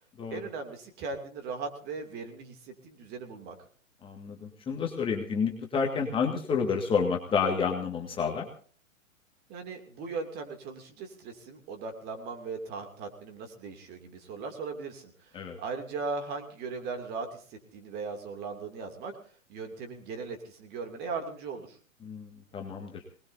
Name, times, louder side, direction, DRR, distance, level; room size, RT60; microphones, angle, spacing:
voice 1, 0.3-3.6 9.5-15.3 15.6-19.1 19.5-21.8, right 4 dB, 25° right, 4 dB, 2.7 m, -38 dB
voice 2, 4.0-8.5 15.3-15.6 22.0-23.0, left 5 dB, 15° left, 2 dB, 1.9 m, -30 dB
24.5 x 20.0 x 2.7 m, 0.43 s
figure-of-eight pair, 115°, 39 cm